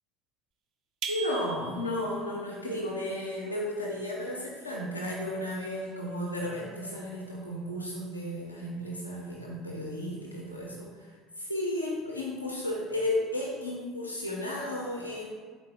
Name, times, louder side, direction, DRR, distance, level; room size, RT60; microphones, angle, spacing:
sound 1, 1.0-2.1, right 6 dB, 50° right, 0.3 m, -38 dB
voice 1, 1.1-15.3, left 1 dB, 85° left, -3 dB, 0.3 m, -34 dB
3.8 x 3.3 x 2.5 m, 1.5 s
figure-of-eight pair, 60°, 0 cm